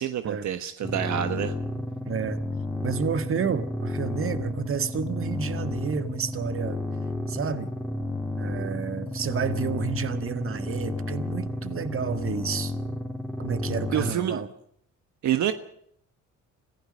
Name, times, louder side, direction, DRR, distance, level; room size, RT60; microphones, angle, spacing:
voice 1, 0.0-1.5 13.9-14.4 15.2-15.5, right 10 dB, 70° right, 1.4 m, -27 dB
sound 1, 0.8-14.1, left 1 dB, ahead, 3.3 m, -32 dB
voice 2, 2.1-2.4 2.8-6.8 7.3-7.7 8.4-12.7 13.4-14.5, right 6 dB, 45° right, 1.7 m, -30 dB
26.0 x 15.5 x 6.5 m
cardioid pair, 90°, 30 cm